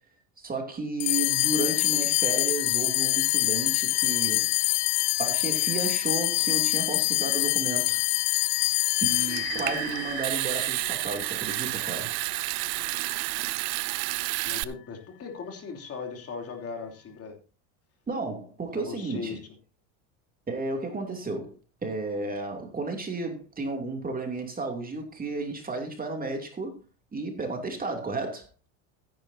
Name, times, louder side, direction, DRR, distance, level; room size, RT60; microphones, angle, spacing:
voice 1, 0.4-4.5 5.2-8.0 9.0-12.1 18.1-19.4 20.5-21.6 21.8-26.8 27.1-28.5, right 3 dB, 20° right, 2.9 m, -33 dB
sound 1, 1.0-11.6, left 24 dB, 60° left, 0.5 m, -26 dB
Water tap faucet / Sink (filling or washing) / Trickle dribble, 9.1-14.6, right 22 dB, 70° right, 0.8 m, -30 dB
voice 2, 14.4-17.4 18.7-19.4, left 5 dB, 35° left, 3.2 m, -38 dB
14.5 x 10.5 x 2.8 m
supercardioid pair, 110°, 43 cm